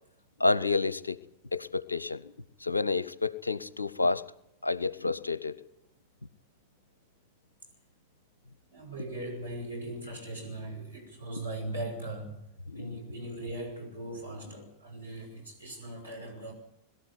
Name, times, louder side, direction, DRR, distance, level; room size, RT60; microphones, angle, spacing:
voice 1, 0.4-1.2 1.5-2.3 2.6-4.3 4.6-5.6 12.7-13.0, left 3 dB, 80° left, 0.8 m, -29 dB
voice 2, 8.7-12.5 12.7-16.5, right 1 dB, 85° right, 7.0 m, -39 dB
22.0 x 13.0 x 9.5 m
figure-of-eight pair, 90°, 0 cm